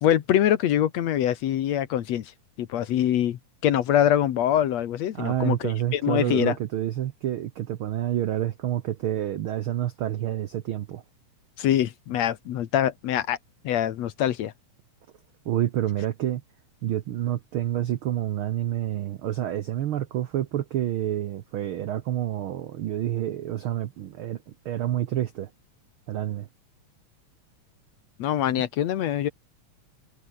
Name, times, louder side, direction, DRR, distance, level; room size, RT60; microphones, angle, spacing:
voice 1, 0.0-2.3 2.6-6.6 11.6-13.4 13.6-14.5 28.2-29.3, left 11 dB, 65° left, 2.2 m, -24 dB
voice 2, 5.1-11.0 15.4-16.4 16.8-25.5 26.1-26.5, right 12 dB, 80° right, 1.2 m, -28 dB
omnidirectional pair, 3.6 m